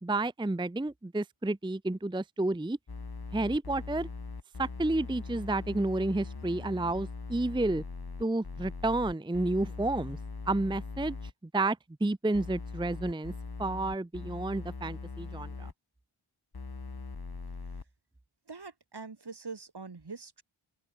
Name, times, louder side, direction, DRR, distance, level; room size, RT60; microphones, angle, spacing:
voice 1, 0.0-2.8 3.3-4.1 4.6-7.8 8.2-10.2 10.5-11.2 11.5-13.3 13.6-15.7, right 2 dB, 10° right, 0.6 m, -30 dB
sound 1, 2.9-11.3 12.3-15.7 16.5-17.8, left 4 dB, 50° left, 1.5 m, -41 dB
voice 2, 18.5-20.4, right 4 dB, 55° right, 1.8 m, -43 dB
open air
wide cardioid pair, 50°, 49 cm